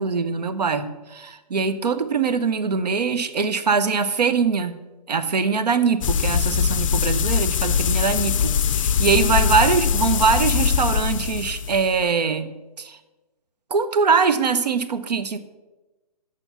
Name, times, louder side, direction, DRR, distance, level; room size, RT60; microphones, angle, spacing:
voice 1, 0.0-4.8 5.1-13.0 13.7-15.4, right 5 dB, 85° right, 11 dB, 0.8 m, -22 dB
sound 1, 6.0-12.0, left 8 dB, 55° left, 0.4 m, -22 dB
7.8 x 6.0 x 6.0 m, 1.1 s
hypercardioid pair, 150°, 20 cm